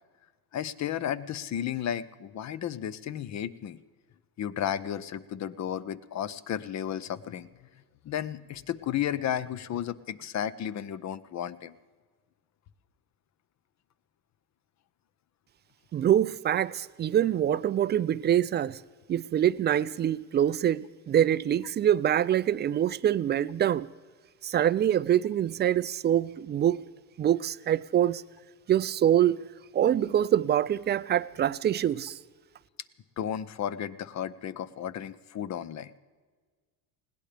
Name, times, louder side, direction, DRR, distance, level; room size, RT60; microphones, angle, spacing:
voice 1, 0.5-3.8 4.4-7.5 8.0-11.7 33.2-36.0, left 10 dB, 40° left, 0.8 m, -33 dB
voice 2, 15.9-18.8 19.1-23.9 24.4-26.9 27.2-28.2 28.7-29.4 29.7-32.2, right 10 dB, 25° right, 0.3 m, -25 dB
20.5 x 17.0 x 3.4 m
supercardioid pair, 95°, 41 cm